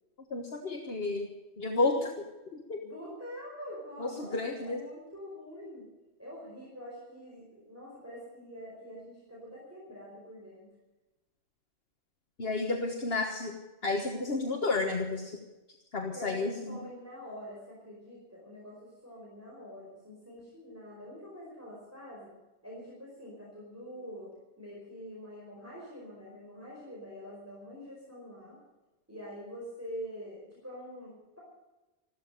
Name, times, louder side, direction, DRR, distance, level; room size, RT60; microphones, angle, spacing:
voice 1, 0.3-1.3 1.6-2.1 2.5-2.8 4.0-4.8 12.4-13.6 13.8-15.4 15.9-16.8, left 3 dB, 60° left, 3 dB, 1.7 m, -31 dB
voice 2, 2.8-5.8 6.2-10.7 16.1-22.3 22.6-24.3 24.6-28.6 29.1-31.4, equal, 15° right, -5 dB, 4.7 m, -45 dB
14.5 x 13.0 x 6.7 m, 1.1 s
omnidirectional pair, 1.1 m